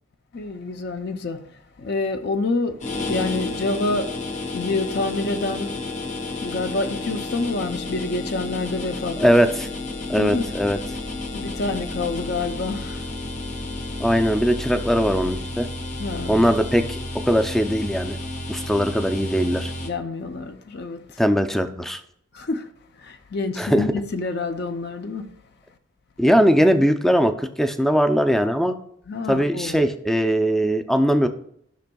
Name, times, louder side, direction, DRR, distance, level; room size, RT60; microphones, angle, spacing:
voice 1, 0.3-4.2 4.5-5.8 6.4-9.3 10.1-10.5 11.3-13.1 16.0-16.4 19.8-21.2 22.3-25.3 29.1-29.8, left 3 dB, 55° left, 0.5 m, -28 dB
sound 1, 2.8-19.9, left 2 dB, 40° left, 0.9 m, -31 dB
voice 2, 9.2-9.7 10.1-10.8 14.0-15.7 16.3-18.2 18.5-19.7 21.2-22.0 23.6-23.8 26.2-28.7 29.3-31.3, equal, ahead, 0.4 m, -20 dB
13.0 x 6.0 x 2.3 m
head